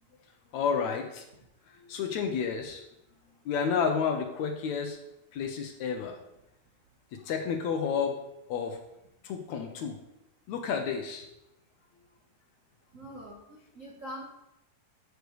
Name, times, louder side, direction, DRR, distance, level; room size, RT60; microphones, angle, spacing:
voice 1, 0.5-1.2 1.8-2.8 3.5-5.0 5.3-6.2 7.1-8.2 8.5-8.8 9.2-10.0 10.5-11.2, left 6 dB, 70° left, 4 dB, 2.0 m, -30 dB
voice 2, 12.9-14.3, equal, 60° right, -2 dB, 0.8 m, -43 dB
13.0 x 6.6 x 3.2 m, 0.84 s
omnidirectional pair, 3.7 m